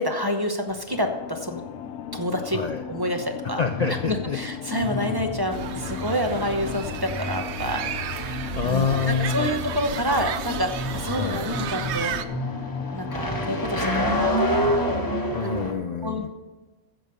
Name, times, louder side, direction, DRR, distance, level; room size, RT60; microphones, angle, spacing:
voice 1, 0.0-1.6 2.1-3.6 4.1-12.3 12.9-14.7 16.0-16.3, equal, 20° right, 4 dB, 0.9 m, -28 dB
sound 1, 0.7-15.7, equal, 20° left, 1.1 m, -30 dB
sound 2, 0.9-14.3, left 9 dB, 85° left, 0.8 m, -37 dB
voice 2, 2.5-2.8 3.6-4.4 8.5-9.5 11.1-11.5 15.3-16.3, left 6 dB, 50° left, 7 dB, 0.5 m, -27 dB
sound 3, 5.5-12.3, right 9 dB, 90° right, 0.9 m, -33 dB
15.0 x 5.3 x 6.8 m, 1.3 s
omnidirectional pair, 1.1 m